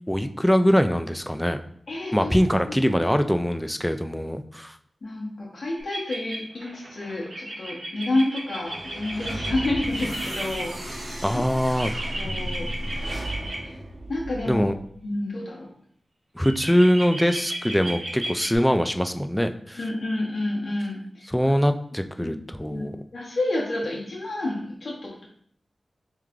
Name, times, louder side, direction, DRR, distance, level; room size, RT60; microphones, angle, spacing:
voice 1, 0.1-1.6 2.1-4.8 11.2-11.9 14.5-14.8 16.4-19.8 21.3-23.0, equal, 5° left, 8 dB, 0.3 m, -22 dB
voice 2, 1.9-2.3 2.7-2.8 5.0-11.1 12.2-12.7 13.6-13.8 14.1-14.7 15.0-15.7 19.8-21.5 22.2-22.3 22.7-22.8 23.1-25.3, left 2 dB, 70° left, -3 dB, 1.0 m, -29 dB
sound 1, 5.8-10.6 11.8-13.6 16.4-18.6, right 1 dB, 75° right, 1.0 m, -34 dB
sound 2, 8.6-14.8, right 1 dB, 50° right, 1.1 m, -34 dB
3.3 x 3.2 x 3.7 m, 0.64 s
wide cardioid pair, 80°, 0 cm